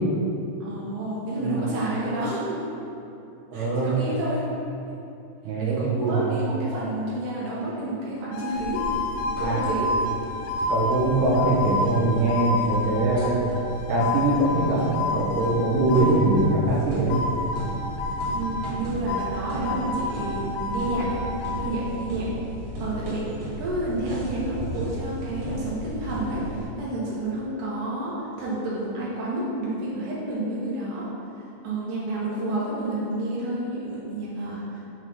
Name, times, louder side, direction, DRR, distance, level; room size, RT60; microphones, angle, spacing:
voice 1, 0.6-2.6 3.5-4.4 5.6-8.8 9.4-9.9 18.3-21.3 21.6-22.3 22.8-23.2 23.6-31.1 31.6-34.8, right 1 dB, 70° right, -7 dB, 2.0 m, -30 dB
voice 2, 3.5-3.9 5.4-6.2 9.4-9.6 10.7-13.4 13.9-17.2, right 2 dB, 85° right, -7 dB, 1.7 m, -22 dB
sound 1, 8.3-16.6 17.1-18.8 19.1-21.7, left 2 dB, 85° left, 2.7 m, -30 dB
sound 2, 8.5-26.7, right 1 dB, 55° right, 2.1 m, -36 dB
7.2 x 3.2 x 5.5 m, 2.7 s
omnidirectional pair, 5.3 m